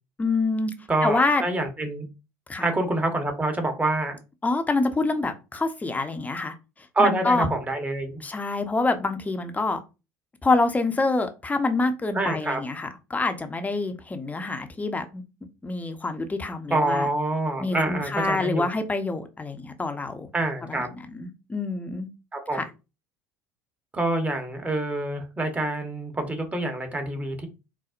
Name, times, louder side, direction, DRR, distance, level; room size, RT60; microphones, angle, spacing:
voice 1, 0.2-0.7 1.0-1.4 2.5-2.7 4.4-6.5 7.0-7.5 8.2-9.8 10.4-15.2 15.6-17.1 17.6-20.3 20.7-20.8 21.1-22.1 22.5-22.6, left 3 dB, 15° left, 0.7 m, -26 dB
voice 2, 0.9-2.0 2.6-4.2 6.9-8.2 12.1-12.6 16.7-18.7 20.3-20.9 22.3-22.7 23.9-27.5, right 2 dB, 15° right, 1.0 m, -26 dB
4.1 x 2.0 x 2.5 m
hypercardioid pair, 75°, 9 cm